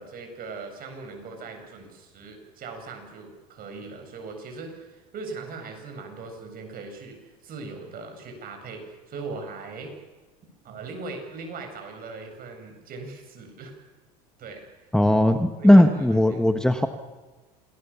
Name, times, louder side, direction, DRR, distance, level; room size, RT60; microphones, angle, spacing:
voice 1, 0.0-9.9 10.6-13.7 14.4-14.6 15.6-16.2, right 4 dB, 45° right, 4 dB, 7.6 m, -39 dB
voice 2, 14.9-16.9, left 1 dB, 5° left, 7 dB, 1.4 m, -17 dB
28.0 x 18.5 x 7.3 m, 1.2 s
supercardioid pair, 105°, 20 cm